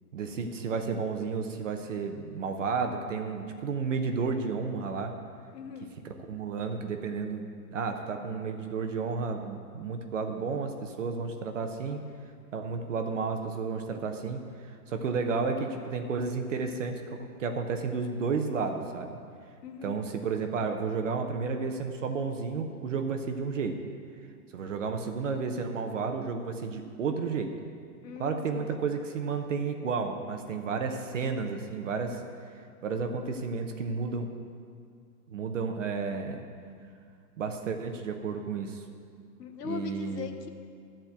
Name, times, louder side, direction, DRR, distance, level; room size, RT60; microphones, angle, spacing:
voice 1, 0.1-5.1 6.0-12.0 12.5-19.1 19.8-23.8 24.5-27.6 28.2-32.2 32.8-34.3 35.3-36.4 37.4-38.8 39.6-40.4, right 5 dB, 50° right, 5 dB, 0.8 m, -32 dB
voice 2, 5.5-5.9 19.6-20.0 28.0-28.7 39.4-40.5, left 7 dB, 90° left, 5 dB, 1.3 m, -40 dB
13.0 x 4.4 x 8.0 m, 2.2 s
hypercardioid pair, 175°, 48 cm